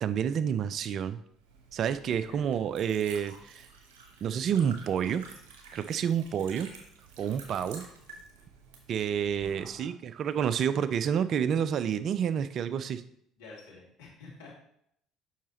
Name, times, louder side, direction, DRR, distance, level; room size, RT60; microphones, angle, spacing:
voice 1, 0.0-1.2 1.7-3.7 4.2-5.2 5.7-6.7 7.2-7.9 8.9-13.0, right 8 dB, 55° right, 13 dB, 0.4 m, -29 dB
Liquid, 1.3-9.8, right 4 dB, 75° right, 1.2 m, -51 dB
voice 2, 7.5-7.9 9.4-9.9 13.4-14.5, left 3 dB, 75° left, -4 dB, 2.3 m, -50 dB
7.3 x 5.8 x 2.9 m, 0.70 s
hypercardioid pair, 60°, 0 cm